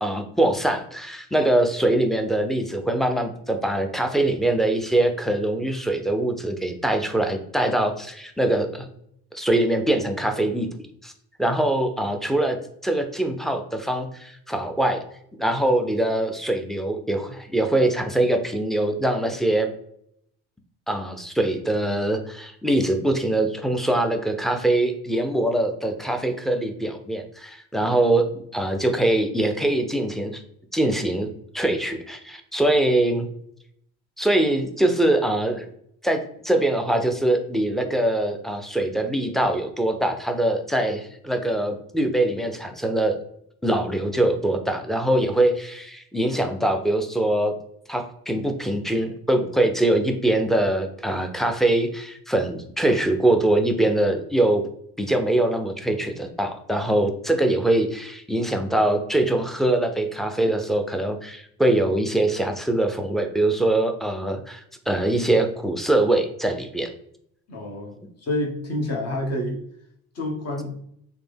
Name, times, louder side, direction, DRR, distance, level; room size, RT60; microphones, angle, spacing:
voice 1, 0.0-8.9 9.3-10.7 11.0-11.1 11.4-12.6 12.8-15.0 15.4-19.7 20.9-30.4 30.7-31.3 31.5-33.3 34.2-35.7 36.0-43.2 43.6-47.5 47.9-54.6 55.0-66.9, right 1 dB, ahead, 5 dB, 0.5 m, -23 dB
voice 2, 67.5-67.9 68.2-69.6 70.1-70.8, left 1 dB, 45° left, 0 dB, 1.1 m, -28 dB
3.3 x 2.1 x 3.4 m, 0.70 s
supercardioid pair, 75°, 34 cm